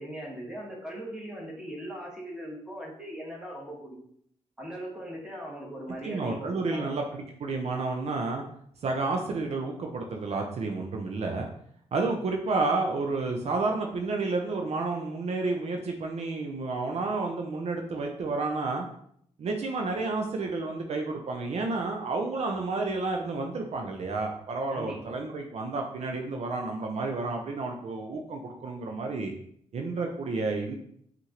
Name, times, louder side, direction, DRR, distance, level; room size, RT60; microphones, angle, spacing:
voice 1, 0.0-4.0 4.6-7.0 24.7-25.0, right 1 dB, 5° right, -3 dB, 1.5 m, -39 dB
voice 2, 6.0-8.4 8.8-11.5 11.9-18.8 19.4-29.3 29.7-30.8, right 3 dB, 60° right, 2 dB, 0.6 m, -30 dB
5.5 x 2.6 x 2.9 m, 0.67 s
cardioid pair, 75°, 12 cm